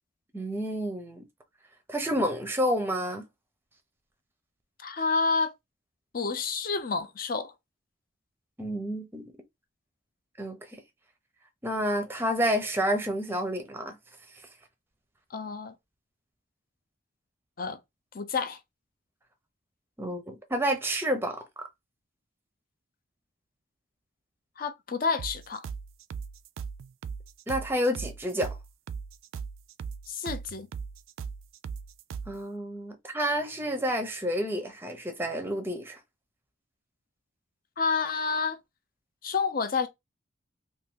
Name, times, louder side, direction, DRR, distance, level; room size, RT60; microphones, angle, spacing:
voice 1, 0.3-1.2 1.9-3.2 8.6-9.2 10.4-10.6 11.6-14.0 20.0-21.6 27.5-28.6 32.3-36.0, equal, 10° right, 0.6 m, -29 dB
voice 2, 4.8-5.5 6.1-7.5 15.3-15.7 17.6-17.8 18.1-18.6 24.6-25.7 30.1-30.7 37.8-38.6 39.2-39.9, left 4 dB, 45° left, 0.5 m, -29 dB
sound 1, 25.2-32.4, right 6 dB, 80° right, 0.3 m, -38 dB
2.6 x 2.6 x 3.6 m
head